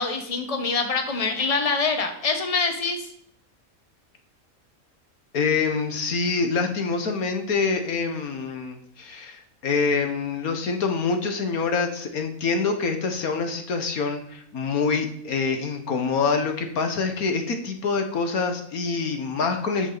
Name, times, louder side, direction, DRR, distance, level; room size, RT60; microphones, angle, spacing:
voice 1, 0.0-3.1, left 4 dB, 25° left, 5 dB, 1.4 m, -25 dB
voice 2, 5.3-19.9, left 4 dB, 85° left, 5 dB, 1.8 m, -26 dB
13.5 x 8.6 x 4.1 m, 0.68 s
omnidirectional pair, 1.5 m